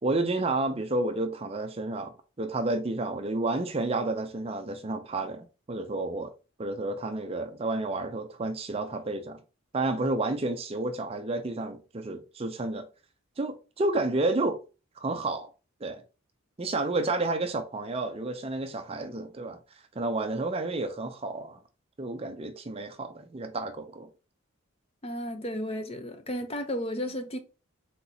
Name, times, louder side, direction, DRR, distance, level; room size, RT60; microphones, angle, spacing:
voice 1, 0.0-6.3 6.6-9.4 9.7-12.9 13.4-14.6 15.0-15.5 15.8-16.0 16.6-19.6 20.0-21.6 22.0-24.1, right 2 dB, 30° right, 0.5 m, -30 dB
voice 2, 25.0-27.4, equal, 30° left, 0.6 m, -33 dB
4.4 x 3.9 x 2.7 m
head